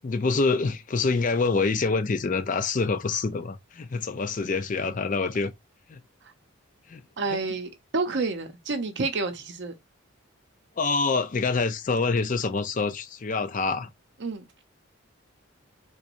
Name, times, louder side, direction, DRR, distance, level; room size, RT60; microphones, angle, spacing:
voice 1, 0.0-5.5 5.9-6.0 6.9-7.0 10.8-13.9, left 4 dB, 40° left, 0.4 m, -26 dB
voice 2, 7.2-9.7 14.2-14.5, right 3 dB, 55° right, 0.6 m, -29 dB
3.7 x 3.0 x 2.5 m
head